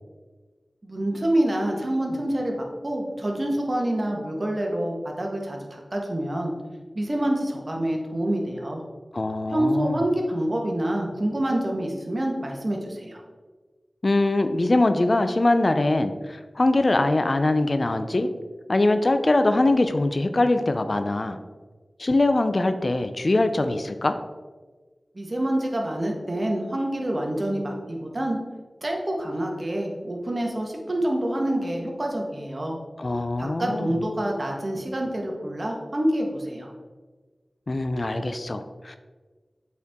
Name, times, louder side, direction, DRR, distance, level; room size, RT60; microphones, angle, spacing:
voice 1, 0.8-6.5 6.9-8.8 9.5-13.2 25.1-28.4 28.8-32.8 33.1-36.7, right 1 dB, 45° right, 0 dB, 1.4 m, -27 dB
voice 2, 9.1-10.0 14.0-18.3 18.7-21.4 22.0-24.2 33.0-33.9 37.7-39.0, left 2 dB, 50° left, 8 dB, 0.5 m, -22 dB
8.2 x 4.5 x 3.7 m, 1.3 s
cardioid pair, 45°, 0 cm